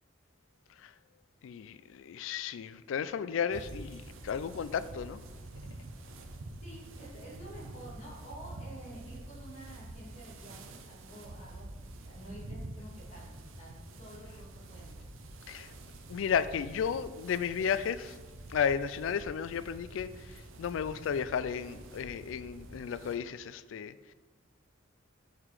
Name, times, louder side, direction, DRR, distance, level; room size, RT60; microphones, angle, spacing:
voice 1, 1.4-5.2 15.5-15.7 16.1-18.2 18.5-24.1, left 7 dB, 75° left, 0.3 m, -33 dB
sound 1, 3.5-23.2, right 2 dB, 85° right, 0.7 m, -47 dB
voice 2, 6.6-15.1, right 1 dB, 35° left, 2.0 m, -50 dB
5.6 x 4.8 x 4.8 m
head